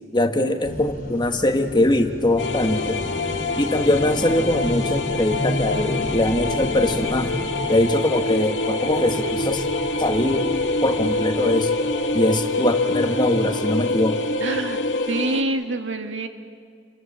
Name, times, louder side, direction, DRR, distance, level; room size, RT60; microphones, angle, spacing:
voice 1, 0.1-3.0 3.6-7.4 7.7-9.6 10.0-10.5 10.8-11.7 12.1-14.2, left 1 dB, 25° left, 6 dB, 1.5 m, -22 dB
sound 1, 0.6-12.5, equal, 50° left, 4.5 m, -33 dB
sound 2, 2.4-15.4, left 2 dB, 80° left, 2.1 m, -25 dB
voice 2, 14.4-14.8 15.1-16.3, right 2 dB, 85° right, 5 dB, 2.1 m, -26 dB
30.0 x 23.5 x 7.5 m, 2.1 s
head